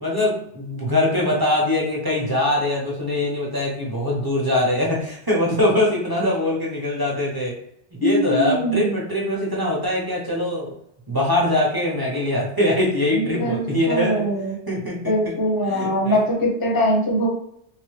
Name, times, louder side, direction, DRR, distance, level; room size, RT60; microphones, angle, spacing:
voice 1, 0.0-7.6 8.0-10.7 11.1-14.3 14.7-15.4 15.6-16.2, left 1 dB, 20° right, -4 dB, 0.7 m, -22 dB
voice 2, 8.0-9.0 13.1-14.6 15.1-17.3, equal, 25° left, -1 dB, 0.6 m, -22 dB
3.5 x 2.1 x 3.2 m, 0.73 s
omnidirectional pair, 1.2 m